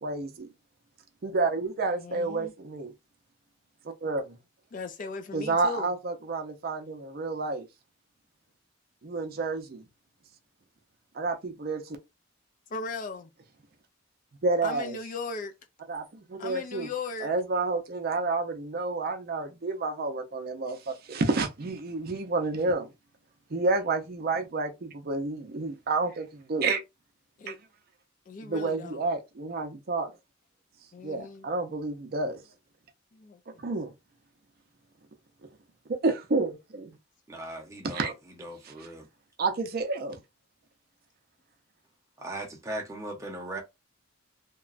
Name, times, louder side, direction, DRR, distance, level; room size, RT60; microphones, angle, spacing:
voice 1, 0.0-0.5 1.2-2.9 3.8-4.4 5.3-7.7 9.0-9.8 11.1-12.0 14.4-15.0 15.9-16.9 17.2-22.9 23.5-26.8 27.5-27.6 28.4-30.1 31.0-32.4 33.6-33.9 35.9-36.9 37.8-38.1 38.6-38.9 39.4-40.2, right 3 dB, 50° right, 0.5 m, -30 dB
voice 2, 2.0-2.5 4.7-5.9 12.7-13.3 14.6-15.5 16.4-17.3 27.4-27.6 28.3-29.0 30.9-31.5 33.1-33.4, left 4 dB, 40° left, 0.3 m, -37 dB
voice 3, 37.3-38.1 38.4-39.1 42.2-43.6, right 1 dB, 15° right, 0.8 m, -38 dB
2.9 x 2.2 x 2.4 m
head